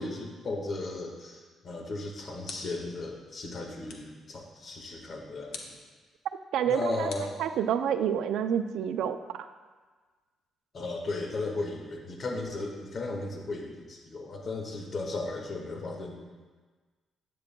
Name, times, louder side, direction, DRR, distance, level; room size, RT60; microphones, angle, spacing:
voice 1, 0.0-5.7 6.7-7.4 10.7-16.2, left 2 dB, 45° left, 1 dB, 1.6 m, -35 dB
sound 1, 2.4-3.0 3.9-4.2 5.5-5.9 7.1-8.0, left 4 dB, 80° left, 1.2 m, -45 dB
voice 2, 6.5-7.1 7.4-9.4, right 9 dB, 80° right, 9 dB, 0.5 m, -28 dB
13.0 x 9.3 x 2.3 m, 1.4 s
cardioid pair, 90°, 0 cm